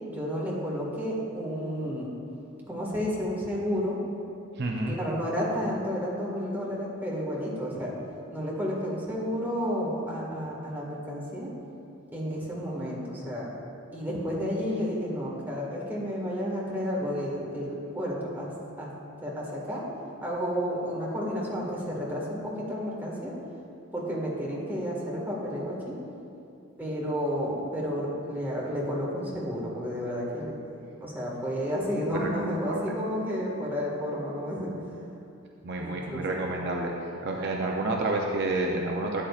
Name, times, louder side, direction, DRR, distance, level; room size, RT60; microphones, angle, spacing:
voice 1, 0.1-2.1 2.7-4.0 4.9-7.9 8.3-11.5 12.1-13.5 13.9-18.5 18.8-18.9 19.2-19.8 20.2-23.3 23.9-26.0 26.8-30.6 31.0-34.7 35.8-36.4, equal, 10° right, -5 dB, 1.7 m, -31 dB
voice 2, 4.5-5.0 32.1-32.3 32.7-32.8 35.6-36.9 37.2-39.2, right 2 dB, 50° right, 0 dB, 0.6 m, -29 dB
12.5 x 8.9 x 2.4 m, 2.6 s
head